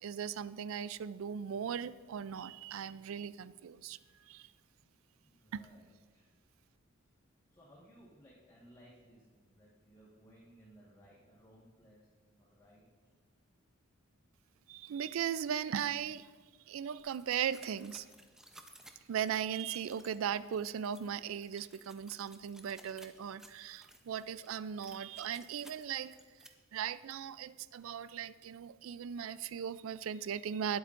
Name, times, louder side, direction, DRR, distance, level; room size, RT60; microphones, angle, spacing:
voice 1, 0.0-4.5 5.5-5.6 14.7-16.3 16.7-18.1 19.1-26.2 26.7-30.8, right 8 dB, 75° right, 17 dB, 0.3 m, -38 dB
voice 2, 5.1-6.3 7.0-7.1 7.5-12.8, equal, 20° left, -6 dB, 1.5 m, -61 dB
sound 1, 17.0-26.5, right 1 dB, 5° right, 0.6 m, -58 dB
19.5 x 7.9 x 2.5 m, 1.5 s
head